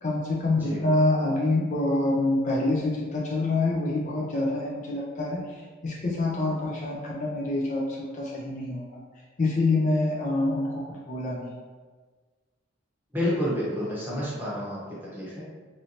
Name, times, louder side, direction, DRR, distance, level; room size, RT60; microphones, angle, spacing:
voice 1, 0.0-5.4 5.8-9.0 9.4-11.6, left 2 dB, 40° left, -3 dB, 0.4 m, -26 dB
voice 2, 13.1-14.8 15.1-15.4, left 1 dB, 10° right, -7 dB, 0.8 m, -29 dB
3.0 x 2.6 x 2.8 m, 1.4 s
head